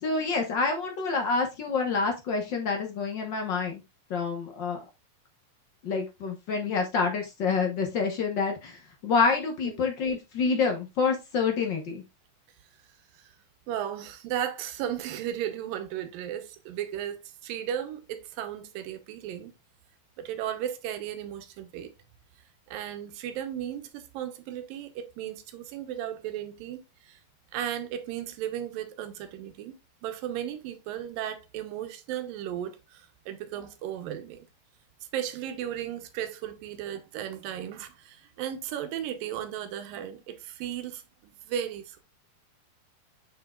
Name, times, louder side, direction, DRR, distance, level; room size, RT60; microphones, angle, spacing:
voice 1, 0.0-3.8 4.1-4.8 5.8-12.0, left 4 dB, 80° left, 1.0 m, -27 dB
voice 2, 13.7-19.5 20.2-21.9 22.7-27.2 27.5-29.7 30.0-34.5 35.1-42.0, right 10 dB, 85° right, 2.6 m, -35 dB
7.4 x 6.7 x 2.4 m
omnidirectional pair, 3.9 m